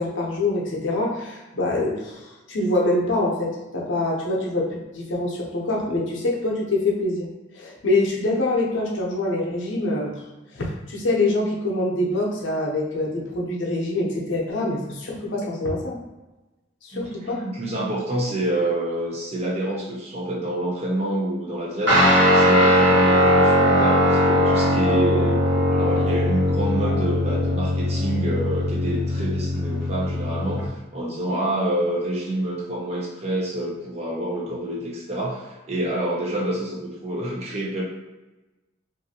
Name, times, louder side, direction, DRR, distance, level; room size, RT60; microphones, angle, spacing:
voice 1, 0.0-7.3 7.5-10.2 10.5-16.0 16.8-17.4 24.9-25.3 25.7-25.8, left 2 dB, 75° left, -2 dB, 0.6 m, -25 dB
voice 2, 16.9-22.1 22.3-25.4 25.7-37.8, right 1 dB, 35° right, -3 dB, 0.6 m, -27 dB
Guitar, 21.9-30.7, equal, 70° right, 1.2 m, -19 dB
2.6 x 2.4 x 2.7 m, 1.1 s
head